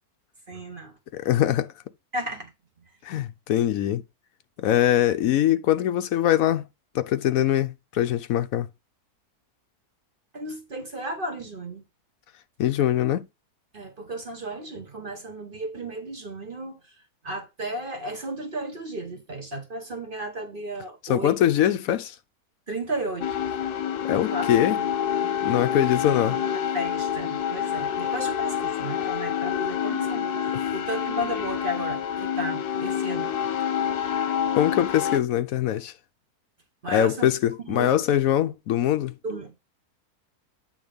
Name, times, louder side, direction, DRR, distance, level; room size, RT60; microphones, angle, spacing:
voice 1, 0.5-0.9 2.1-2.5 10.3-11.8 13.7-16.8 17.2-21.4 22.7-23.6 24.3-24.5 24.8-24.9 25.9-33.3 36.8-37.3 37.7-38.0 39.2-39.6, right 1 dB, 40° right, 1.0 m, -34 dB
voice 2, 1.1-1.7 3.0-4.0 4.6-6.7 6.9-8.7 12.6-13.2 21.1-22.1 24.0-24.8 25.2-26.4 30.6-30.7 34.2-34.3 34.5-35.9 36.9-39.1, left 11 dB, 70° left, 1.0 m, -23 dB
sound 1, 23.2-35.2, left 9 dB, 85° left, 1.3 m, -27 dB
8.8 x 3.3 x 5.0 m
omnidirectional pair, 1.7 m